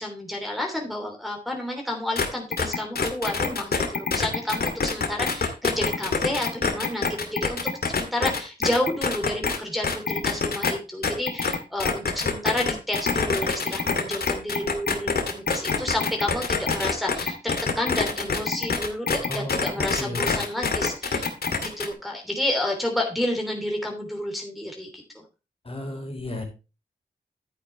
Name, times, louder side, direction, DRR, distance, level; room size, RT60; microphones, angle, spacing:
voice 1, 0.0-21.3 21.6-24.9 25.1-25.2, left 1 dB, ahead, 0 dB, 3.1 m, -30 dB
sound 1, 2.2-2.3 2.5-9.6 9.8-10.7 11.0-21.9, left 5 dB, 70° left, 2.2 m, -25 dB
voice 2, 19.3-19.6 20.0-20.4 25.6-26.4, left 1 dB, 35° left, 3 dB, 4.0 m, -33 dB
10.5 x 9.5 x 3.1 m, 0.30 s
wide cardioid pair, 75°, 16 cm